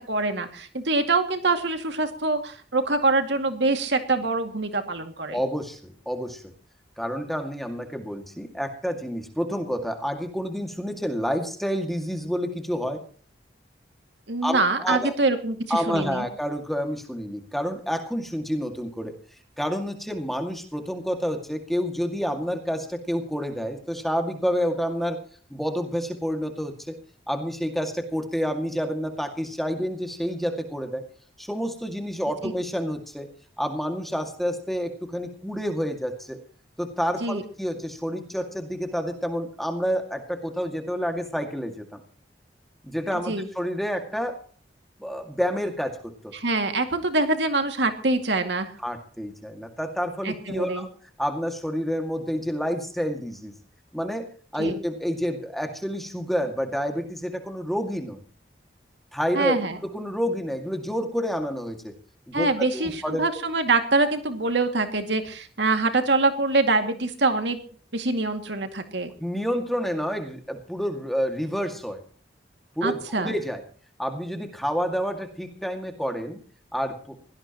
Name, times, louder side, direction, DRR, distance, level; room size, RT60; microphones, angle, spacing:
voice 1, 0.1-5.4 14.3-16.2 32.4-32.5 37.2-37.4 43.3-43.5 46.3-48.7 50.2-50.9 54.6-54.8 59.3-59.8 62.3-67.6 67.9-69.1 72.8-73.3, right 3 dB, 75° right, 6 dB, 2.3 m, -24 dB
voice 2, 5.3-6.5 7.0-13.0 14.4-15.1 15.7-19.1 19.6-25.2 25.5-27.0 27.3-31.0 31.4-33.3 33.6-36.4 36.8-42.0 42.8-44.4 45.0-46.3 48.8-50.9 51.2-53.5 53.9-54.3 54.5-58.2 59.1-59.6 59.8-61.9 62.3-63.2 69.2-72.0 72.8-73.6 74.0-76.4 76.7-77.2, equal, ahead, 4 dB, 2.1 m, -29 dB
22.5 x 17.5 x 3.0 m, 0.43 s
head